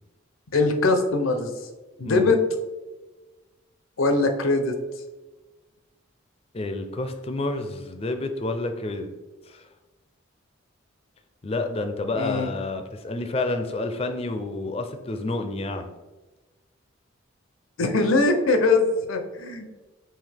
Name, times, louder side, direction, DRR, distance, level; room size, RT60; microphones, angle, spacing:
voice 1, 0.5-1.5 2.0-2.4 4.0-4.7 12.1-12.5 17.8-19.7, left 3 dB, 85° left, 6 dB, 0.6 m, -21 dB
voice 2, 6.5-9.1 9.5-9.7 11.4-15.9, left 2 dB, 30° left, 7 dB, 0.4 m, -29 dB
5.6 x 2.7 x 3.4 m, 1.2 s
head